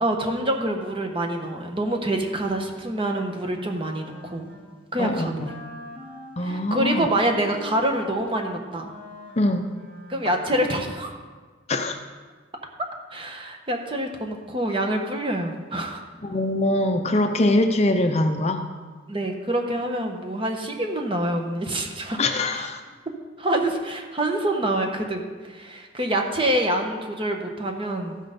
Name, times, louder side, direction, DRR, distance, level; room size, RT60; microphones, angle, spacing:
voice 1, 0.0-4.5 4.9-5.5 6.4-8.9 10.1-11.1 13.1-16.0 19.1-22.2 22.5-22.7 23.4-25.2 25.5-28.2, right 1 dB, 25° right, 3 dB, 1.1 m, -26 dB
Wind instrument woodwind instrument, 3.5-4.6 4.9-5.2 5.4-10.7, left 2 dB, 60° right, 2.7 m, -43 dB
voice 2, 5.0-5.5 6.4-7.1 9.4-9.7 11.7-12.0 16.2-18.6 22.2-22.8, left 1 dB, 35° left, 6 dB, 0.6 m, -23 dB
14.0 x 6.4 x 5.2 m, 1.5 s
head